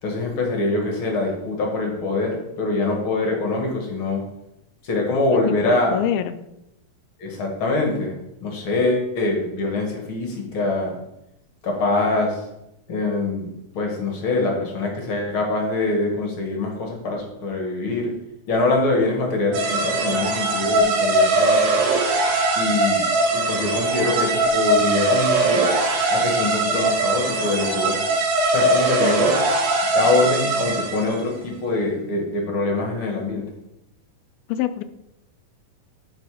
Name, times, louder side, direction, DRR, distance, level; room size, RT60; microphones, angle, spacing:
voice 1, 0.0-4.2 4.8-6.0 7.2-11.0 11.6-12.5 12.9-18.1 18.5-21.7 22.6-23.0 23.3-25.6 26.1-28.0 28.5-29.3 29.9-33.4, left 2 dB, 50° left, 0 dB, 1.8 m, -24 dB
voice 2, 5.5-6.4 20.7-20.9 29.0-29.1 34.5-34.8, left 11 dB, 85° left, 11 dB, 2.4 m, -26 dB
sound 1, 19.5-31.2, right 2 dB, 80° right, 3.1 m, -21 dB
10.5 x 4.5 x 4.9 m, 0.87 s
omnidirectional pair, 4.2 m